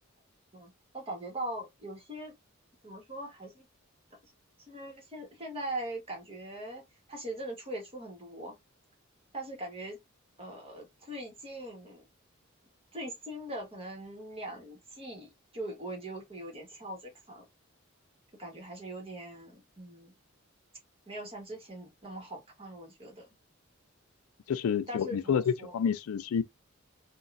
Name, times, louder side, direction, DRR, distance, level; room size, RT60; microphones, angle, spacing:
voice 1, 0.5-2.4 2.8-3.7 4.7-6.8 7.1-8.5 9.3-10.0 10.4-12.1 12.9-17.4 18.4-20.1 21.1-23.3 24.9-25.8, right 1 dB, 25° right, 1.3 m, -41 dB
voice 2, 24.5-26.4, left 7 dB, 85° left, 0.4 m, -29 dB
3.9 x 2.3 x 2.4 m
head